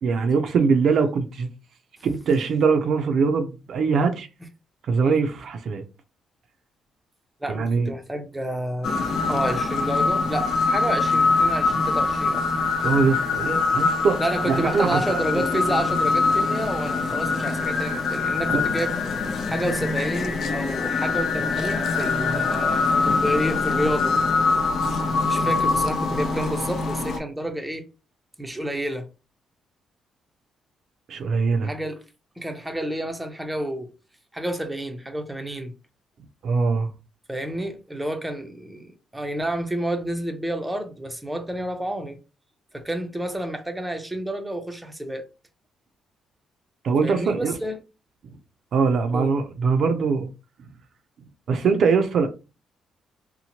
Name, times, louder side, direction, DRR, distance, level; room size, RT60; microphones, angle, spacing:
voice 1, 0.0-1.5 2.0-4.3 4.9-5.8 7.5-7.9 12.8-14.2 14.5-15.4 18.5-18.6 31.1-31.7 36.4-36.9 46.8-47.5 48.7-50.3 51.5-52.3, right 5 dB, 65° right, 0.4 m, -22 dB
voice 2, 7.4-9.0 9.3-12.5 14.2-19.0 19.5-24.2 25.3-27.9 28.4-29.1 31.6-32.0 32.4-33.9 34.3-35.7 37.3-42.2 42.7-45.2 47.0-47.8 49.1-49.3, right 1 dB, 10° right, 0.6 m, -29 dB
sound 1, 8.8-27.2, left 4 dB, 60° left, 0.6 m, -23 dB
2.8 x 2.1 x 2.8 m
cardioid pair, 90°, 0 cm